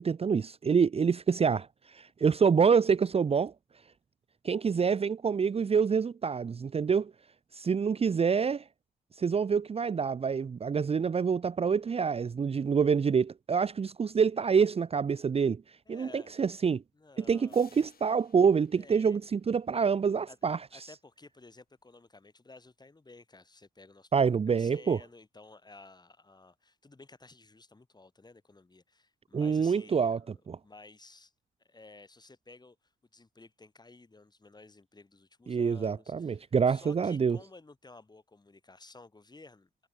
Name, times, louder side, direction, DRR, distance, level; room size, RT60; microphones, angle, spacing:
voice 1, 0.0-3.5 4.4-7.1 7.5-8.6 9.2-15.6 15.9-16.8 17.2-20.6 24.1-25.0 29.3-30.2 30.5-30.6 35.5-37.4, right 6 dB, 35° right, 0.7 m, -26 dB
voice 2, 15.9-16.4 16.9-17.7 18.7-19.2 20.3-20.4 20.7-24.1 24.5-30.3 30.6-31.3 31.6-39.9, left 3 dB, 25° left, 5.9 m, -54 dB
sound 1, 17.5-20.2, left 8 dB, 60° left, 4.0 m, -62 dB
cardioid pair, 75°, 17 cm